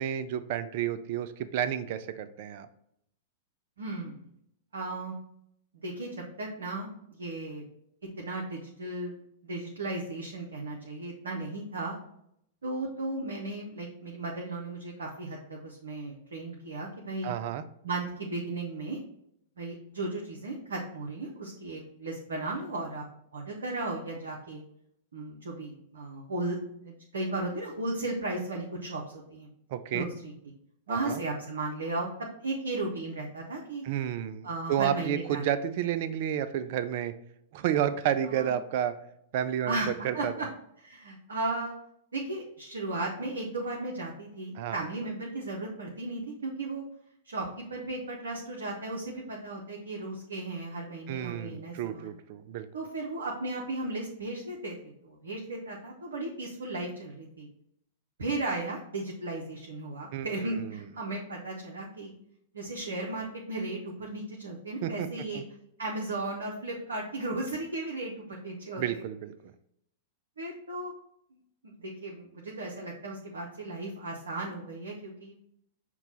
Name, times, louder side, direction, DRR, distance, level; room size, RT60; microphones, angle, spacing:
voice 1, 0.0-2.7 17.2-17.6 29.7-30.1 30.9-31.2 33.8-37.1 37.5-38.9 39.3-40.5 44.6-44.8 51.1-52.7 60.1-60.3 60.6-60.8 64.8-65.1 65.3-65.4 68.8-69.5, right 10 dB, 55° right, 12 dB, 0.3 m, -31 dB
voice 2, 3.8-4.1 4.7-5.1 5.8-7.6 8.2-9.2 9.4-11.9 12.6-17.3 17.8-19.0 19.6-23.0 23.3-24.6 25.1-26.6 26.8-29.5 29.9-30.3 30.9-32.1 32.4-33.8 34.4-35.4 38.3-38.5 39.6-39.9 40.1-40.5 40.8-41.7 42.1-46.8 47.2-52.1 52.7-54.8 55.0-57.5 58.2-62.1 62.5-65.4 65.8-69.0 70.4-70.9 71.6-75.3, right 2 dB, 75° right, -1 dB, 0.7 m, -35 dB
5.8 x 2.2 x 4.0 m, 0.74 s
figure-of-eight pair, 100°, 0 cm